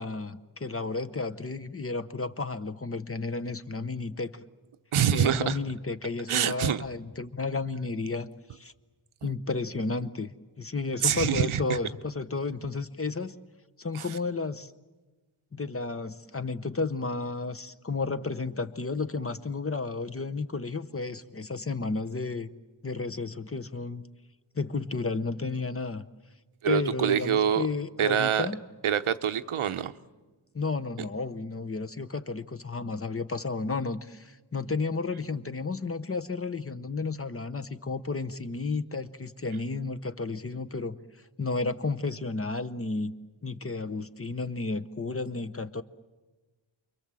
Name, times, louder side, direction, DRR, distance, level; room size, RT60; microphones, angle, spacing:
voice 1, 0.0-4.4 5.1-8.7 9.2-13.4 13.8-14.7 15.5-22.5 22.8-24.0 24.5-26.0 26.6-28.6 30.5-41.0 41.4-43.1 43.4-45.8, left 3 dB, 30° left, 12 dB, 0.8 m, -32 dB
voice 2, 4.9-5.6 6.3-6.8 11.0-11.6 13.9-14.0 26.6-27.6 28.0-28.5 28.8-29.9, right 9 dB, 85° right, 11 dB, 0.9 m, -25 dB
29.0 x 23.0 x 7.6 m, 1.2 s
wide cardioid pair, 100°, 48 cm